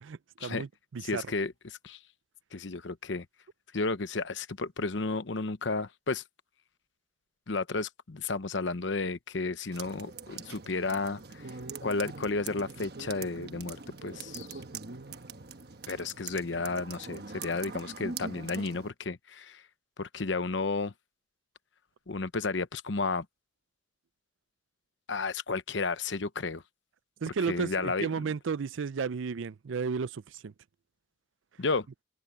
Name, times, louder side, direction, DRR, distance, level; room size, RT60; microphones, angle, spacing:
voice 1, 0.0-1.3 27.2-30.5, right 5 dB, 85° right, 0.5 m, -33 dB
voice 2, 1.0-1.5 1.8-2.0 2.5-3.3 3.7-6.2 7.5-11.5 11.8-14.6 15.9-19.6 20.0-20.9 22.1-23.2 25.1-26.6 27.3-28.2 31.6-31.9, left 3 dB, 70° left, 0.9 m, -32 dB
sound 1, 9.7-18.9, right 4 dB, 55° right, 1.2 m, -43 dB
head